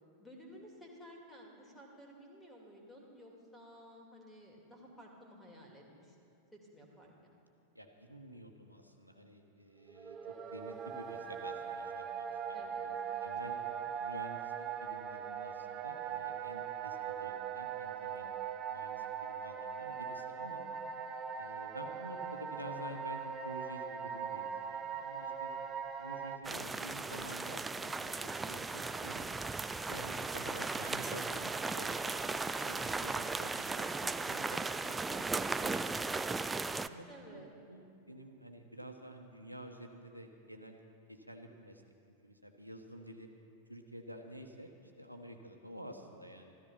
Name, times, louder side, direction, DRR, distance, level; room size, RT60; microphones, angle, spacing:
voice 1, 0.2-6.2 6.5-7.4 12.5-13.3 13.7-13.8 37.1-37.5, equal, 5° left, -1 dB, 2.7 m, -54 dB
voice 2, 7.7-13.6 13.9-18.3 18.6-20.6 21.4-25.5 26.0-29.3 29.9-36.1 36.8-40.8 41.1-41.8 42.2-43.3 43.7-46.5, equal, 90° right, 4 dB, 1.3 m, -50 dB
sound 1, 9.9-26.4, right 7 dB, 30° right, 0.8 m, -40 dB
sound 2, 26.4-36.9, right 3 dB, 10° right, 0.4 m, -37 dB
14.5 x 14.0 x 5.7 m, 2.5 s
figure-of-eight pair, 90°, 0 cm